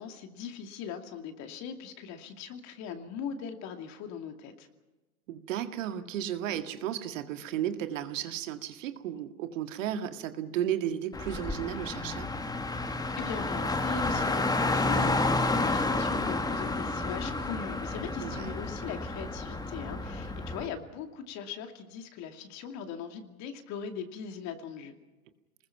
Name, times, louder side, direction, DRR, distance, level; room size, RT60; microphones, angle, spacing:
voice 1, 0.0-4.7 13.2-24.9, left 7 dB, 40° left, 6 dB, 2.6 m, -40 dB
voice 2, 5.3-12.3 18.2-18.5, right 10 dB, 60° right, 8 dB, 1.9 m, -34 dB
Car, 11.1-20.7, left 2 dB, 10° left, 1.7 m, -30 dB
28.5 x 20.5 x 5.9 m, 1.2 s
hypercardioid pair, 105°, 43 cm